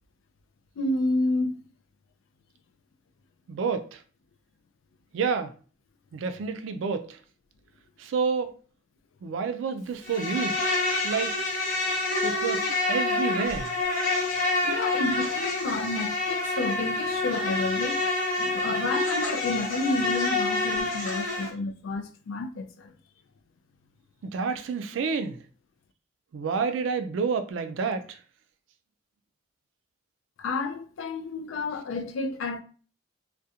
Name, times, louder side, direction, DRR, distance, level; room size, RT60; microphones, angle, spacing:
voice 1, 0.8-1.6 14.6-18.1 18.4-22.9 30.4-32.6, left 3 dB, 85° left, 0.3 m, -30 dB
voice 2, 3.5-4.0 5.1-5.5 6.1-7.2 8.0-8.5 9.2-10.7 11.0-11.4 12.2-13.7 24.2-25.4 26.3-28.2, right 5 dB, 75° right, 0.3 m, -29 dB
Insect, 10.0-21.5, left 2 dB, 45° left, 1.0 m, -27 dB
2.3 x 2.1 x 2.7 m
head